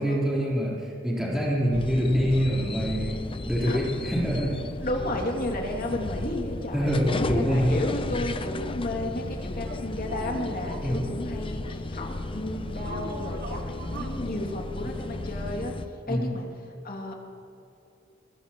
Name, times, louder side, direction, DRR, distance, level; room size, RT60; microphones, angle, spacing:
voice 1, 0.0-4.5 6.7-7.8 10.8-11.0 16.1-16.3, equal, ahead, -6 dB, 3.8 m, -25 dB
sound 1, 1.7-15.9, left 2 dB, 30° left, 0.6 m, -34 dB
voice 2, 4.8-7.0 7.3-15.7 16.1-16.5 16.8-17.2, left 1 dB, 50° left, 0 dB, 2.6 m, -33 dB
sound 2, 9.7-11.0 12.7-14.2, right 2 dB, 50° right, 1.1 m, -40 dB
22.5 x 21.0 x 3.1 m, 2.7 s
head